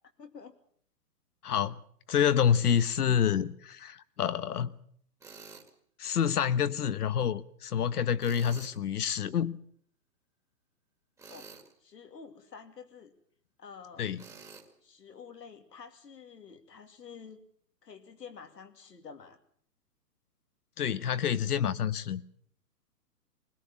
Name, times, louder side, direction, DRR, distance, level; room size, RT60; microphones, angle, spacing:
voice 1, 0.2-0.6 11.3-11.5 11.8-13.1 13.6-14.1 14.8-17.4 17.8-19.4, left 6 dB, 90° left, 2.8 m, -49 dB
voice 2, 1.4-1.8 2.1-4.8 6.0-9.6 14.0-14.2 20.8-22.2, left 8 dB, 70° left, 1.2 m, -28 dB
Tools, 5.2-5.7 8.2-8.8 11.2-11.7 14.2-14.7, right 4 dB, 5° right, 2.1 m, -49 dB
20.5 x 20.0 x 7.2 m
hypercardioid pair, 145°, 48 cm